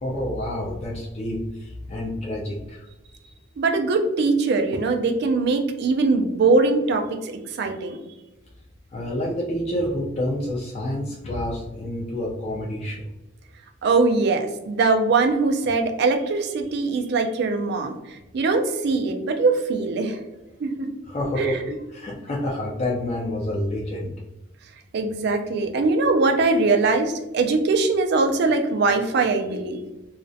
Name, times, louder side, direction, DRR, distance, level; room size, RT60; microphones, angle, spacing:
voice 1, 0.0-2.9 8.9-13.0 21.1-21.6 21.9-24.1, left 1 dB, 35° left, -3 dB, 0.3 m, -28 dB
voice 2, 3.6-7.3 7.6-8.0 13.8-17.9 18.3-20.2 20.6-20.9 21.3-21.6 24.9-29.8, right 3 dB, 55° right, 5 dB, 0.3 m, -21 dB
2.4 x 2.1 x 2.5 m, 0.98 s
head